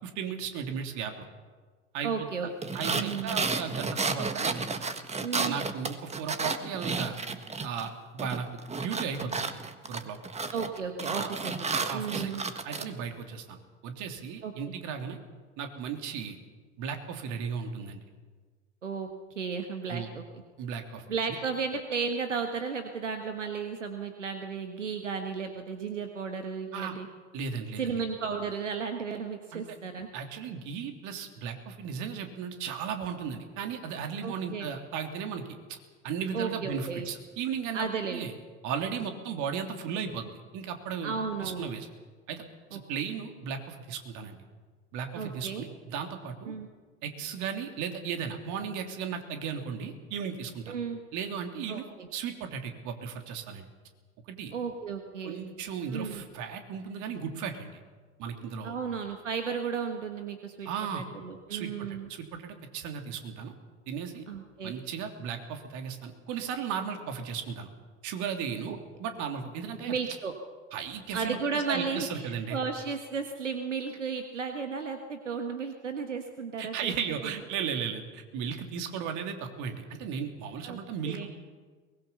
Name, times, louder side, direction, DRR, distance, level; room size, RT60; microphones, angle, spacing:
voice 1, 0.0-1.3 1.9-2.5 2.7-4.5 5.4-7.2 7.6-8.5 8.7-9.6 9.9-10.2 11.2-11.3 11.9-12.3 12.6-13.6 13.8-15.2 15.6-16.4 16.8-18.0 19.9-20.1 20.6-21.0 26.7-27.0 27.3-27.9 29.5-29.6 30.1-35.4 35.7-35.8 36.0-38.3 38.6-41.1 41.4-41.9 42.3-42.4 42.7-44.4 44.9-46.5 47.0-50.8 51.1-51.9 52.1-53.7 54.3-54.5 55.2-57.8 58.2-58.8 60.6-61.1 61.5-63.5 63.9-64.2 64.6-67.7 68.0-69.9 70.7-72.6 76.6-81.3, right 7 dB, 55° right, 5 dB, 3.2 m, -36 dB
voice 2, 2.0-3.4 5.2-5.6 10.5-12.4 14.4-14.5 18.8-19.1 19.3-20.2 21.1-27.1 27.8-30.1 34.2-34.7 36.3-37.1 37.7-38.3 41.0-41.7 42.7-42.8 45.1-45.6 46.4-46.7 50.7-51.0 51.7-52.1 54.5-55.4 55.9-56.2 58.6-60.7 60.9-62.1 64.3-64.7 68.7-68.8 69.9-70.3 71.1-76.9 77.2-77.3 80.6-80.8 81.1-81.3, right 5 dB, 90° right, 5 dB, 1.6 m, -34 dB
sound 1, 2.6-7.9 8.2-12.9, right 4 dB, 20° right, 1.7 m, -32 dB
22.5 x 20.5 x 7.1 m, 1.4 s
hypercardioid pair, 75°, 36 cm